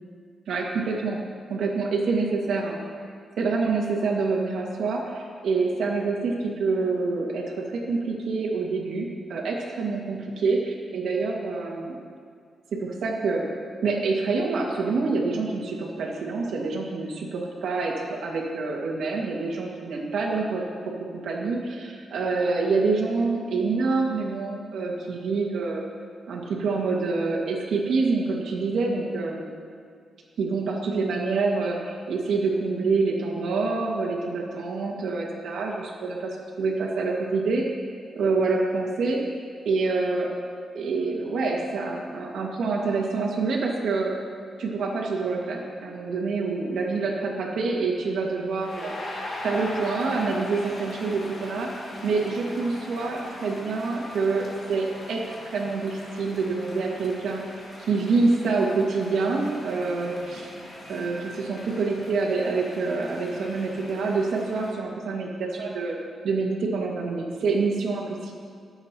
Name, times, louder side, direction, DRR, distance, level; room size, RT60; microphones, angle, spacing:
voice 1, 0.5-1.2 1.5-2.8 3.4-12.0 12.7-13.5 13.8-17.9 18.2-20.6 21.1-25.8 26.3-29.5 30.4-37.7 38.2-39.4 39.7-40.3 40.7-44.2 44.6-51.7 52.0-57.4 57.8-60.5 60.9-66.0 66.2-68.3, right 4 dB, 75° right, -1 dB, 1.9 m, -26 dB
sound 1, 48.0-64.7, left 1 dB, 35° left, 2.0 m, -41 dB
23.0 x 8.0 x 3.0 m, 2.2 s
wide cardioid pair, 175°, 0 cm